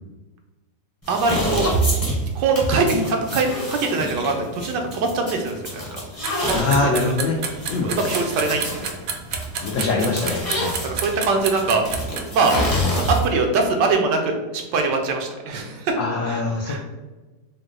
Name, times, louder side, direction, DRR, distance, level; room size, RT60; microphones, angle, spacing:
sound 1, 1.0-13.4, right 1 dB, 15° left, 0.6 m, -27 dB
voice 1, 1.1-1.7 2.3-5.8 6.4-6.6 6.8-6.9 7.8-8.7 10.8-11.8 12.3-12.5 13.2-15.9 16.3-16.4 16.7-16.8, right 3 dB, 85° right, 3 dB, 1.3 m, -22 dB
sound 2, 6.2-12.2, right 6 dB, 70° right, 0.8 m, -28 dB
voice 2, 6.5-7.4 7.7-7.9 9.6-10.7 16.0-16.9, left 3 dB, 75° left, -1 dB, 0.7 m, -23 dB
4.5 x 2.1 x 3.7 m, 1.2 s
omnidirectional pair, 1.8 m